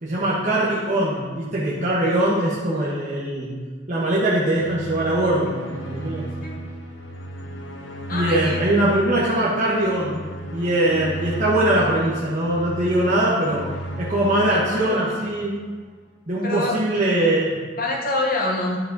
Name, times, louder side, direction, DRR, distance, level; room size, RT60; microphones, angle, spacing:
voice 1, 0.0-3.5 3.9-5.5 5.8-6.3 8.1-10.2 10.5-13.7 14.0-15.5 16.3-17.6, right 1 dB, 40° right, -7 dB, 1.2 m, -21 dB
sound 1, 4.5-15.8, right 1 dB, 70° left, 1.0 m, -35 dB
voice 2, 8.1-8.6 14.5-15.0 16.4-17.1 17.8-18.8, left 2 dB, 45° left, 0 dB, 1.3 m, -26 dB
11.0 x 5.4 x 4.0 m, 1.5 s
head